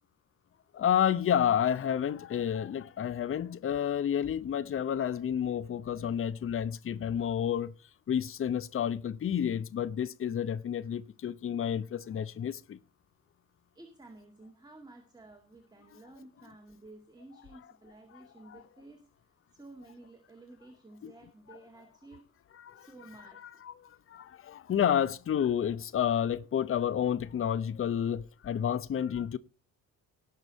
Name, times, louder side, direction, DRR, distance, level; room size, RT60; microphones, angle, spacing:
voice 1, 0.7-7.7 8.1-12.8 18.5-18.6 21.0-21.1 22.6-22.9 23.6-29.4, left 9 dB, 25° left, 0.7 m, -30 dB
voice 2, 13.7-19.1 19.5-22.3 22.8-23.4, right 2 dB, 10° right, 2.1 m, -53 dB
18.0 x 6.6 x 4.2 m
figure-of-eight pair, 45°, 49 cm